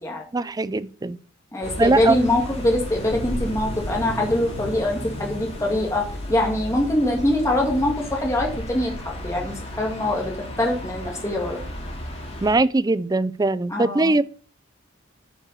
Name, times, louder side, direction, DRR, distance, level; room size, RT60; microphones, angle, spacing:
voice 1, 0.3-1.2 1.8-2.1 12.4-14.2, right 2 dB, 20° right, 0.4 m, -21 dB
voice 2, 1.5-6.0 6.3-10.3 10.6-11.6 13.7-14.1, left 1 dB, 15° left, 2.1 m, -23 dB
sound 1, 1.6-12.5, left 1 dB, 30° left, 2.9 m, -33 dB
9.6 x 5.5 x 6.6 m
head